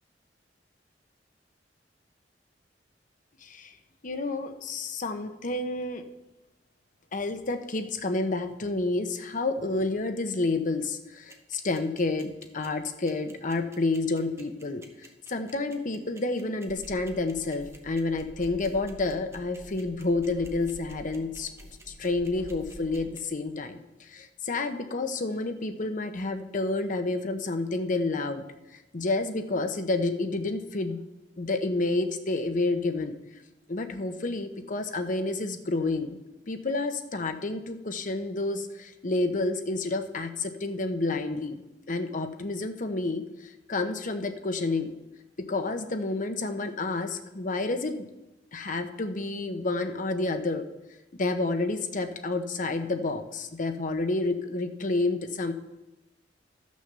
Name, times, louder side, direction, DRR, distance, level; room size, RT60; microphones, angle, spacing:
voice 1, 3.4-3.7 4.0-6.0 7.1-21.5 22.0-28.4 28.9-31.0 31.4-33.2 33.7-36.2 36.5-41.6 41.9-44.9 45.4-48.1 48.5-50.6 51.2-55.5, left 2 dB, 45° left, 7 dB, 0.9 m, -29 dB
sound 1, 11.3-23.2, right 3 dB, 15° right, 1.2 m, -52 dB
sound 2, 16.7-23.0, equal, 20° left, 4.1 m, -47 dB
13.0 x 6.4 x 6.8 m, 0.99 s
head